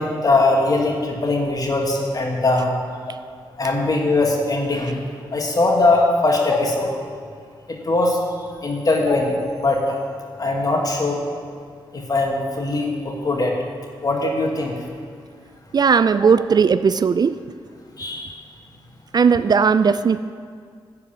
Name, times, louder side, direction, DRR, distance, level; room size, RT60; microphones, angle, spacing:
voice 1, 0.0-2.7 3.1-3.2 3.6-5.0 5.3-6.9 7.7-8.2 8.6-10.0 10.4-11.2 11.9-13.6 14.0-14.8 18.0-18.3, left 2 dB, 40° left, 0 dB, 2.3 m, -20 dB
voice 2, 15.7-17.4 19.1-20.2, right 6 dB, 45° right, 13 dB, 0.4 m, -17 dB
13.0 x 4.7 x 8.7 m, 2.1 s
cardioid pair, 60°, 10 cm